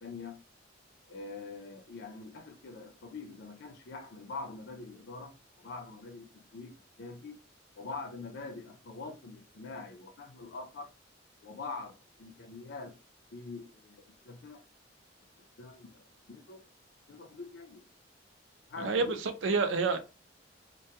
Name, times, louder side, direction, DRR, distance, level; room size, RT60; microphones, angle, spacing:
voice 1, 0.0-0.4 1.1-7.4 7.8-10.9 11.4-13.0 13.3-14.6 15.6-16.6 17.1-17.8 18.7-19.2, left 3 dB, 60° left, 0.5 m, -44 dB
voice 2, 18.8-20.0, right 4 dB, 80° right, 0.5 m, -28 dB
2.2 x 2.1 x 2.8 m
head